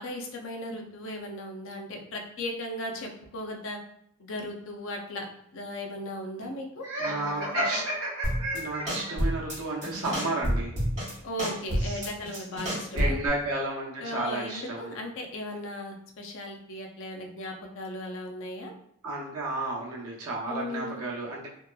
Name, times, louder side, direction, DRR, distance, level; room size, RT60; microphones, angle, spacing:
voice 1, 0.0-3.8 4.2-5.3 5.5-7.8 11.2-13.2 14.0-18.7 20.5-21.0, left 1 dB, 60° left, 2 dB, 0.5 m, -37 dB
Laughter, 6.8-9.1, right 1 dB, 60° right, 1.1 m, -31 dB
voice 2, 7.0-7.9 8.5-10.7 11.8-12.0 12.3-12.4 12.9-14.9 19.0-21.5, right 2 dB, 85° right, -3 dB, 0.7 m, -33 dB
sound 1, 8.2-8.6 8.9-9.6 9.8-11.1 11.4-13.3, equal, 35° right, 1.1 m, -28 dB
2.8 x 2.2 x 2.2 m, 0.70 s
head